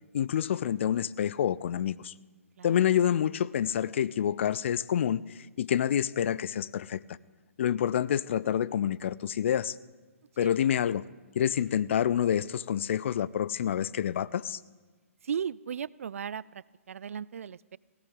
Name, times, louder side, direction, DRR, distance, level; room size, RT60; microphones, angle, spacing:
voice 1, 0.1-2.1 2.6-7.2 7.6-9.8 10.4-11.1 11.4-14.6, left 9 dB, 55° left, 20 dB, 0.4 m, -28 dB
voice 2, 15.2-17.8, right 7 dB, 70° right, 22 dB, 0.3 m, -36 dB
18.5 x 16.5 x 3.8 m, 1.3 s
figure-of-eight pair, 130°, 8 cm